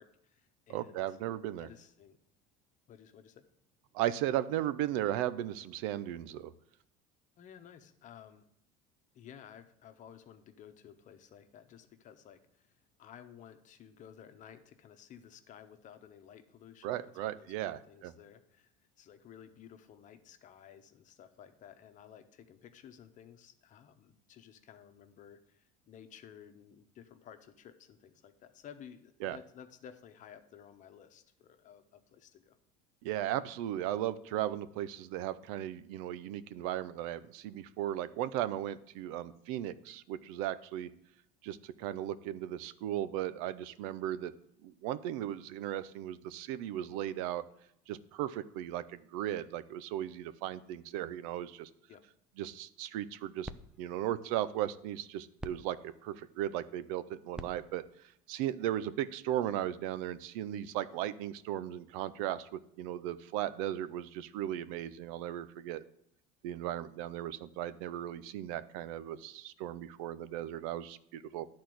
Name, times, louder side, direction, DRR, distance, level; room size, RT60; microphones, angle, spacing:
voice 1, 0.0-1.2 1.6-2.2 2.9-3.4 7.4-8.5 9.1-32.6 51.9-52.0, left 8 dB, 45° left, 9 dB, 1.1 m, -55 dB
voice 2, 0.7-1.7 3.9-6.5 16.8-18.1 29.2-29.4 33.0-40.9 41.4-44.3 44.6-47.4 47.9-51.7 52.4-53.5 53.8-57.8 58.3-65.8 66.4-71.5, right 12 dB, 85° right, 15 dB, 0.6 m, -36 dB
sound 1, 52.9-59.3, right 1 dB, 5° right, 0.5 m, -52 dB
10.5 x 4.3 x 7.8 m, 0.75 s
cardioid pair, 120°, 17 cm